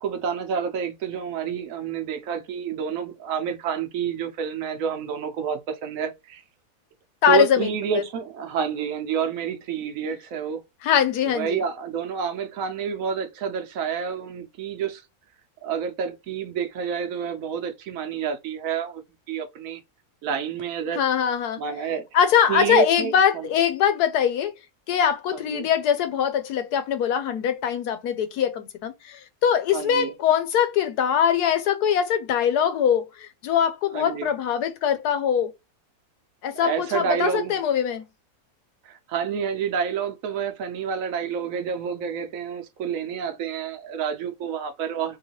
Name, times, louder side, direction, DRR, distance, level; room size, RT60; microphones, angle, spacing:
voice 1, 0.0-6.4 7.3-10.6 11.2-15.0 15.6-19.0 19.3-19.8 20.2-21.0 21.6-22.0 22.5-23.5 25.3-25.7 29.7-30.1 33.9-34.3 36.6-37.6 38.8-45.2, right 7 dB, 65° right, 1.0 m, -29 dB
voice 2, 7.2-7.7 10.8-11.6 21.0-21.6 22.1-24.5 24.9-29.1 29.4-35.5 36.4-38.0, left 8 dB, 90° left, 1.3 m, -22 dB
3.2 x 2.9 x 2.8 m
omnidirectional pair, 1.6 m